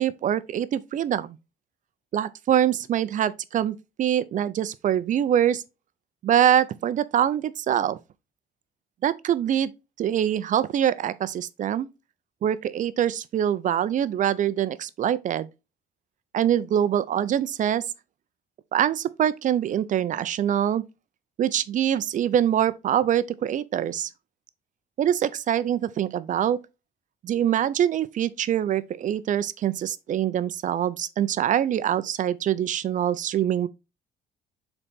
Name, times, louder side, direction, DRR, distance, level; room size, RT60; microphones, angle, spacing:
voice 1, 0.0-1.4 2.1-5.6 6.2-8.0 9.0-9.7 10.0-11.9 12.4-15.5 16.3-17.8 18.7-20.8 21.4-24.1 25.0-26.6 27.2-33.7, right 10 dB, 50° right, 0.6 m, -24 dB
7.0 x 4.1 x 3.6 m
cardioid pair, 110°, 17 cm